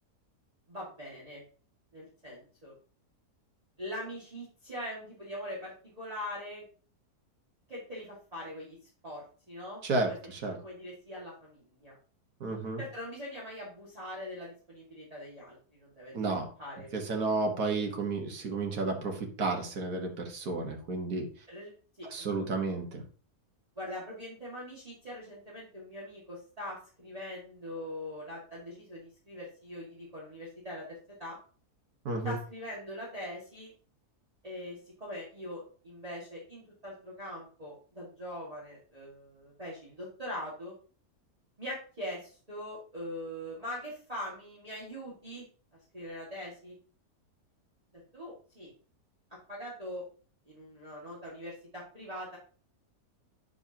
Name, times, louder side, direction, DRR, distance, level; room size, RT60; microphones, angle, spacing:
voice 1, 0.7-1.4 1.9-2.7 3.8-6.6 7.7-8.8 9.0-10.2 10.6-11.9 12.8-17.4 21.5-21.7 22.0-22.3 23.8-30.9 31.2-31.4 32.2-33.7 34.4-40.7 41.6-45.4 45.9-46.8 47.9-48.7 49.5-50.0 50.5-52.4, equal, 25° right, -7 dB, 2.2 m, -42 dB
voice 2, 9.8-10.6 12.4-12.8 16.1-16.5 16.9-21.3 22.1-23.0 32.1-32.3, right 3 dB, 80° right, 3 dB, 2.0 m, -32 dB
9.4 x 6.7 x 2.9 m, 0.42 s
omnidirectional pair, 1.6 m